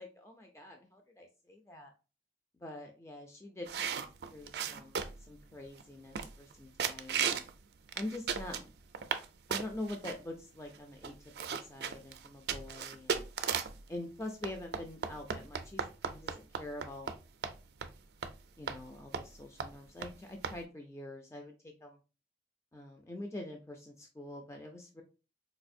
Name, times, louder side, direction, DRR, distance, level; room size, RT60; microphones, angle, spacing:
voice 1, 0.0-1.9 2.6-4.0 4.3-7.4 8.0-8.7 9.5-11.1 11.5-13.2 13.9-17.1 18.6-21.5 21.8-22.0 22.7-25.0, left 1 dB, 15° left, 3 dB, 0.4 m, -45 dB
sound 1, 3.7-5.3 5.8-5.9 6.1-6.5 6.8-7.5 7.9-9.2 9.5-10.1 10.7-10.8 11.0-13.8 14.4-17.2 17.4-17.5 17.8-17.9 18.2-18.3 18.7-18.8 19.1-19.3 19.6-19.7 20.0-20.1 20.4-20.6, right 6 dB, 60° right, 0.4 m, -35 dB
4.1 x 2.5 x 2.6 m, 0.32 s
head